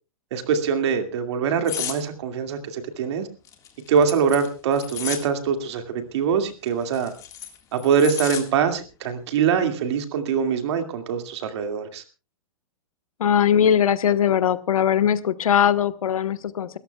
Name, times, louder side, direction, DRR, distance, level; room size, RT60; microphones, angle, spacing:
voice 1, 0.3-3.3 3.9-7.1 7.7-12.0, right 6 dB, 50° right, 7 dB, 2.2 m, -23 dB
sound 1, 1.7-2.0 3.4-5.3 6.7-8.4 8.8-9.1, left 10 dB, 20° left, 1.7 m, -33 dB
voice 2, 13.2-16.8, left 9 dB, 90° left, 12 dB, 1.2 m, -20 dB
27.5 x 14.0 x 2.3 m, 0.31 s
hypercardioid pair, 160°, 18 cm